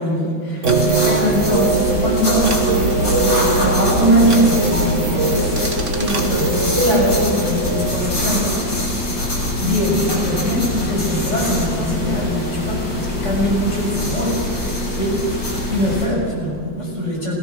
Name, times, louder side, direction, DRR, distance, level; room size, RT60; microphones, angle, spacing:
voice 1, 0.0-9.0 9.6-17.3, equal, 35° left, -4 dB, 7.1 m, -22 dB
sound 1, 0.6-7.9, right 3 dB, 40° right, 1.9 m, -21 dB
sound 2, 0.7-16.1, left 1 dB, 70° left, 8.9 m, -24 dB
27.5 x 17.5 x 6.3 m, 2.5 s
omnidirectional pair, 2.1 m